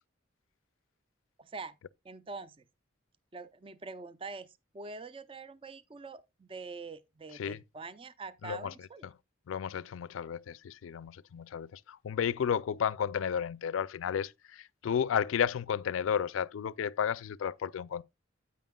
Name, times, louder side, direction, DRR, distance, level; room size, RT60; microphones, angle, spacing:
voice 1, 1.4-1.8 2.0-2.6 3.3-9.1, right 4 dB, 25° right, 0.4 m, -44 dB
voice 2, 8.4-8.7 9.5-18.0, left 8 dB, 85° left, 0.3 m, -32 dB
9.2 x 8.5 x 2.2 m
head